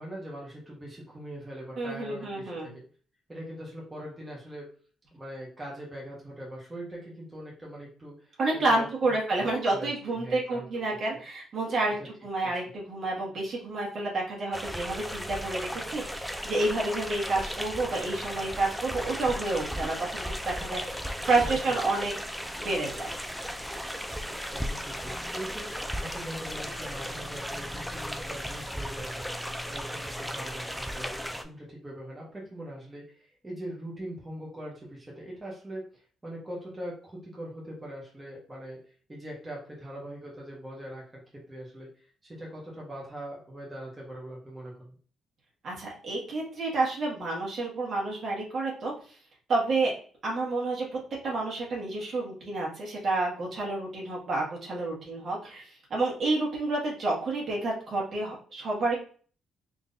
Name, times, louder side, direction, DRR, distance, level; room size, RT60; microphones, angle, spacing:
voice 1, 0.0-2.8 3.3-4.7 5.1-10.7 11.1-11.2 12.4-12.7 21.4-21.8 24.5-45.0, right 1 dB, 20° right, -3 dB, 1.4 m, -42 dB
voice 2, 1.8-2.7 8.4-23.1 45.6-49.2 49.5-49.9 50.2-58.9, right 2 dB, 55° right, -3 dB, 1.9 m, -29 dB
sound 1, 14.5-31.4, equal, ahead, 0.5 m, -36 dB
3.9 x 3.3 x 2.7 m, 0.42 s
cardioid pair, 90°, 0 cm